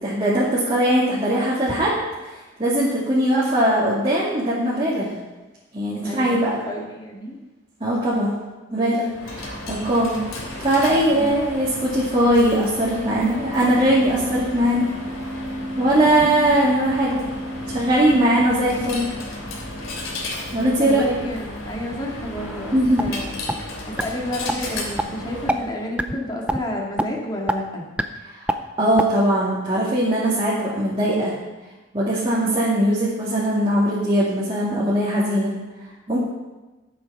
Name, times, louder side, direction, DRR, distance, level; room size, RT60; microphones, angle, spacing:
voice 1, 0.0-2.0 2.2-2.3 2.6-5.1 5.7-6.6 7.8-8.3 8.7-10.2 10.6-14.9 15.8-17.2 17.7-19.1 20.5-21.1 22.7-23.1 28.4-31.3 31.9-35.5 36.1-36.2, right 1 dB, 25° right, -8 dB, 2.5 m, -20 dB
voice 2, 6.6-7.4 11.2-11.3 16.2-16.3 20.8-23.3 23.9-27.8, left 1 dB, 20° left, -2 dB, 2.3 m, -30 dB
Coin (dropping), 9.1-25.7, left 1 dB, 80° left, 3.2 m, -33 dB
sound 1, 22.4-23.1 23.5-23.6 24.0-24.1 24.5-24.6 25.0-25.1 25.5-25.6 26.0-26.2 26.5-26.6 27.0-27.1 27.5-27.6 28.0-28.1 28.5-28.6 29.0-29.1, right 1 dB, 5° right, 0.5 m, -23 dB
13.0 x 8.0 x 5.6 m, 1.1 s
head